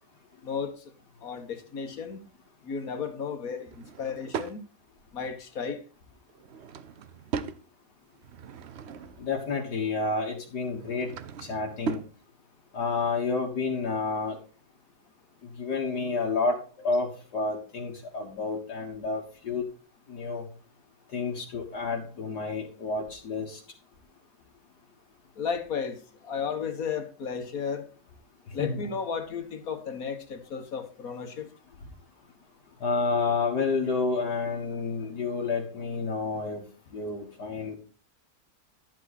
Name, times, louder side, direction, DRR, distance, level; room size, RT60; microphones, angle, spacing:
voice 1, 0.4-0.9 1.2-2.2 2.6-4.6 5.1-5.8 25.4-27.9 28.5-31.5, left 6 dB, 55° left, 7 dB, 1.8 m, -34 dB
Drawer open or close / Wood, 3.6-4.6 6.3-7.6 8.1-9.3 10.6-12.1, right 6 dB, 60° right, 0.7 m, -38 dB
voice 2, 9.2-11.1 11.4-12.0 12.7-14.4 15.4-19.7 20.1-20.5 21.1-23.6 28.6-28.8 32.8-36.6 36.9-37.8, left 4 dB, 75° left, -1 dB, 2.2 m, -30 dB
11.5 x 7.9 x 4.1 m, 0.38 s
omnidirectional pair, 1.8 m